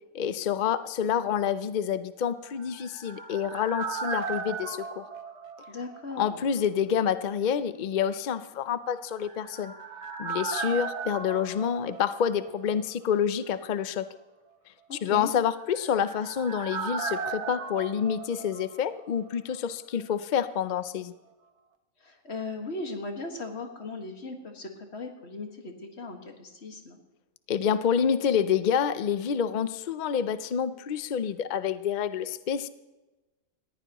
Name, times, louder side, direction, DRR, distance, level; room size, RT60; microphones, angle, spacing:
voice 1, 0.1-5.1 6.2-9.7 10.2-14.1 14.9-21.1 27.5-32.7, left 8 dB, 70° left, 13 dB, 0.4 m, -28 dB
sound 1, 2.5-6.3 6.6-6.7 9.1-12.8 13.1-13.2 15.4-19.3 19.5-19.6, right 5 dB, 55° right, 1.3 m, -36 dB
voice 2, 5.7-6.4 14.9-15.3 22.0-27.0, left 3 dB, 50° left, 3 dB, 1.9 m, -38 dB
20.0 x 14.5 x 3.0 m, 1.1 s
omnidirectional pair, 1.5 m